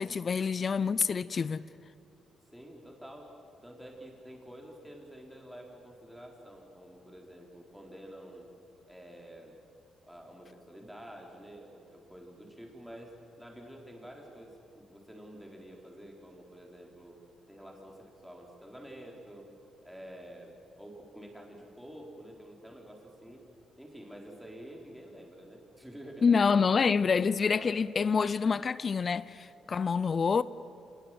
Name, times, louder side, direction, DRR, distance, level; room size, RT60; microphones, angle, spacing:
voice 1, 0.0-1.6 26.2-30.4, left 5 dB, 40° left, 0.5 m, -27 dB
voice 2, 2.5-8.5 8.9-9.6 10.0-17.2 17.5-19.5 19.8-23.4 23.8-26.4 27.5-27.8 29.6-29.7 30.0-30.1, equal, 5° right, 4.1 m, -49 dB
25.5 x 20.5 x 7.8 m
cardioid pair, 90°, 0 cm